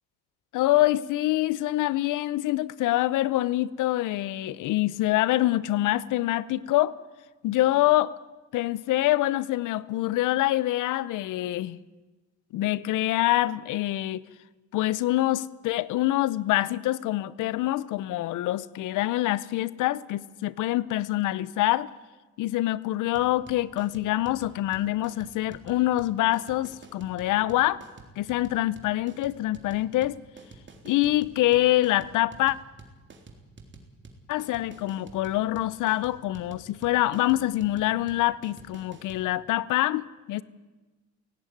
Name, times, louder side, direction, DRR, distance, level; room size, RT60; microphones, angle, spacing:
voice 1, 0.5-6.9 7.4-8.1 8.5-11.8 12.5-14.2 14.7-21.9 22.4-27.8 28.2-30.2 30.8-32.6 34.3-40.4, left 16 dB, 90° left, 20 dB, 0.8 m, -25 dB
sound 1, 23.1-39.2, right 3 dB, 40° right, 3.8 m, -48 dB
17.5 x 17.0 x 10.0 m, 1.2 s
cardioid pair, 90°, 30 cm